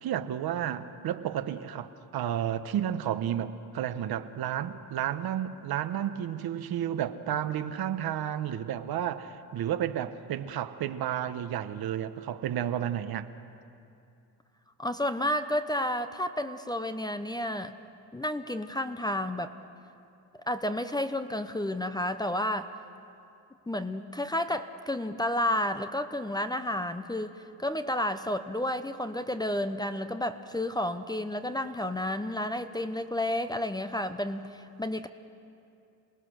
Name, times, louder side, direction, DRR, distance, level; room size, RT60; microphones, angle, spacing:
voice 1, 0.0-13.3, right 10 dB, 60° right, 10 dB, 1.1 m, -32 dB
voice 2, 14.8-17.7 18.1-19.5 20.5-22.7 23.7-35.1, left 1 dB, 10° left, 9 dB, 0.7 m, -31 dB
28.0 x 18.5 x 6.4 m, 2.6 s
cardioid pair, 100°, 41 cm